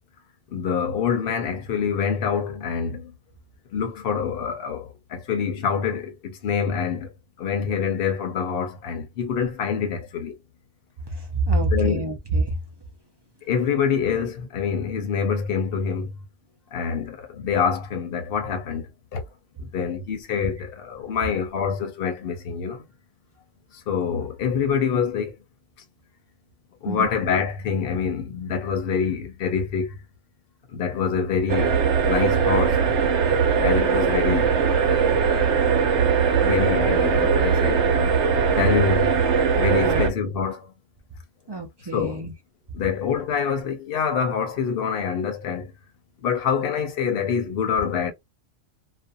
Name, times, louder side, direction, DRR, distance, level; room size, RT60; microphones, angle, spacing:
voice 1, 0.5-3.1 3.7-7.1 7.4-10.3 11.7-12.1 13.5-16.1 16.7-18.9 19.1-19.2 19.7-22.8 23.9-25.3 26.8-29.9 30.7-32.8 33.6-34.5 35.3-35.6 36.4-38.1 38.5-39.1 39.6-40.7 41.9-42.3 42.7-45.7 46.2-48.1, left 6 dB, 55° left, 0.9 m, -26 dB
voice 2, 11.1-12.5 26.9-27.1 39.8-40.0 41.5-42.3, right 2 dB, 45° right, 0.3 m, -25 dB
sound 1, 31.5-40.1, right 6 dB, 70° right, 0.9 m, -20 dB
2.5 x 2.2 x 2.5 m
omnidirectional pair, 1.3 m